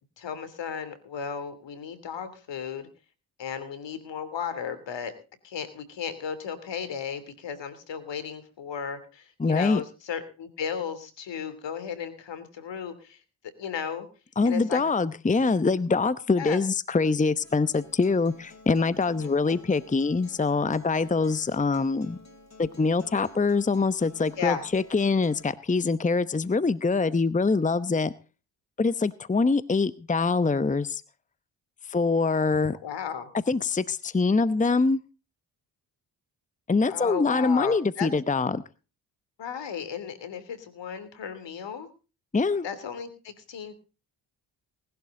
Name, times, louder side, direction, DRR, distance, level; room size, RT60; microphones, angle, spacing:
voice 1, 0.2-2.9 3.4-5.1 5.4-13.2 13.6-14.1 14.4-14.8 16.4-16.6 19.2-19.6 24.4-24.6 32.8-33.3 36.9-38.1 39.4-41.9 42.6-43.7, left 7 dB, 70° left, 13 dB, 3.0 m, -35 dB
voice 2, 9.4-9.8 14.4-22.2 22.6-28.1 28.8-31.0 31.9-32.8 33.3-35.0 36.7-38.6 42.3-42.7, left 4 dB, 15° left, 16 dB, 0.9 m, -24 dB
Acoustic guitar, 17.4-25.4, left 2 dB, 35° left, 3.9 m, -51 dB
19.5 x 11.5 x 3.8 m, 0.34 s
supercardioid pair, 45°, 45 cm